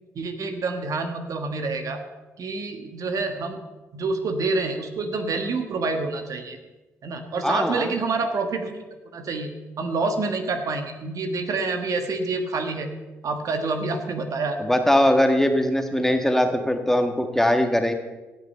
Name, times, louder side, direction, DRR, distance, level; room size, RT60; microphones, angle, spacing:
voice 1, 0.1-2.0 2.4-3.6 3.9-6.6 7.0-9.5 9.8-12.9 13.2-14.6, right 3 dB, 60° right, 6 dB, 1.4 m, -27 dB
voice 2, 7.4-7.9 14.6-17.9, left 1 dB, 5° left, 5 dB, 1.5 m, -21 dB
17.5 x 5.9 x 5.6 m, 1.1 s
hypercardioid pair, 50°, 7 cm